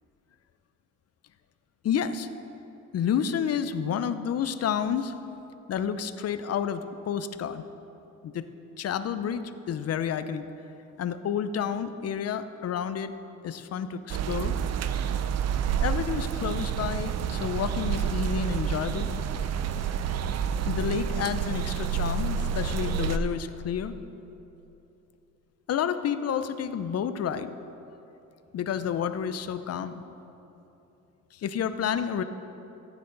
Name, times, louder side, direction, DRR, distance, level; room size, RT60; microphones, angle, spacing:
voice 1, 1.8-2.3 2.9-5.1 5.7-7.6 8.2-8.4 8.8-10.5 11.0-13.1 13.4-14.6 15.8-19.1 20.7-23.9 25.7-27.5 28.5-30.0 31.3-32.2, left 8 dB, 55° left, 11 dB, 0.6 m, -30 dB
sound 1, 14.1-23.2, right 7 dB, 60° right, 0.6 m, -29 dB
14.5 x 9.2 x 3.9 m, 2.9 s
cardioid pair, 90°, 30 cm